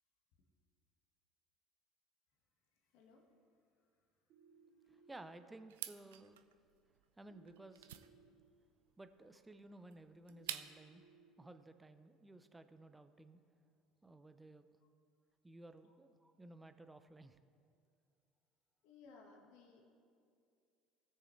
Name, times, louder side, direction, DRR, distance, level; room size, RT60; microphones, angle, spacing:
voice 1, 2.9-3.2 4.8-5.0 15.8-15.9 18.8-19.8, left 4 dB, 70° left, 1 dB, 1.5 m, -61 dB
sound 1, 4.3-5.3 7.3-8.3 10.3-11.3, right 6 dB, 55° right, 2.3 m, -65 dB
voice 2, 4.9-6.4 7.2-7.9 9.0-11.0 11.4-13.4 14.0-14.7 15.4-17.4, right 2 dB, 15° right, 9 dB, 0.7 m, -56 dB
sound 2, 5.7-11.0, right 12 dB, 85° right, 0.4 m, -50 dB
18.0 x 6.6 x 3.3 m, 2.3 s
hypercardioid pair, 70°, 0 cm